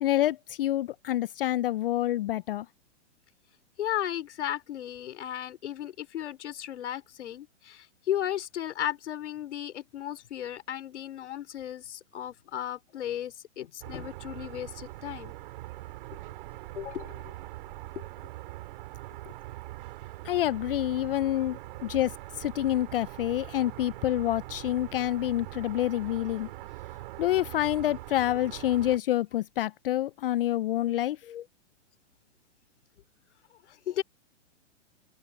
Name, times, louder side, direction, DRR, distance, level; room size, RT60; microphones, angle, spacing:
voice 1, 0.0-2.7 20.2-26.5 27.2-31.2, left 13 dB, 50° left, 0.5 m, -27 dB
voice 2, 3.8-15.3 16.7-17.3 17.9-18.0 30.8-31.0 31.3-31.4 33.7-34.0, left 11 dB, 70° left, 3.4 m, -35 dB
sound 1, 13.8-29.0, right 18 dB, 45° right, 3.8 m, -42 dB
open air
hypercardioid pair, 150°, 36 cm